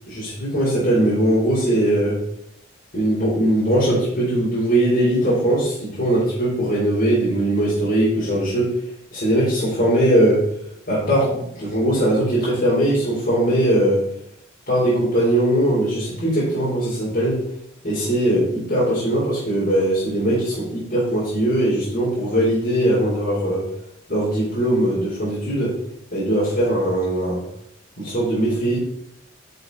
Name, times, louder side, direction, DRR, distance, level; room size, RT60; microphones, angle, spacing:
voice 1, 0.1-2.2 2.9-8.7 9.1-10.5 10.9-14.0 14.7-17.4 17.8-23.6 24.1-25.8 26.1-27.4 28.0-28.8, right 1 dB, 50° left, -9 dB, 4.0 m, -20 dB
9.9 x 6.8 x 4.1 m, 0.73 s
head